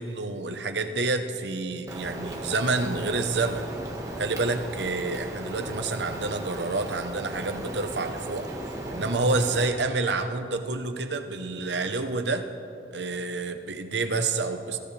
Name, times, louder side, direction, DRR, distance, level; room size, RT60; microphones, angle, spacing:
voice 1, 0.0-3.7 4.2-8.5 8.9-12.4 12.9-14.8, right 3 dB, 85° right, 7 dB, 1.0 m, -28 dB
Rain, 1.9-9.7, right 1 dB, 20° right, 1.5 m, -36 dB
23.0 x 15.0 x 3.4 m, 2.9 s
head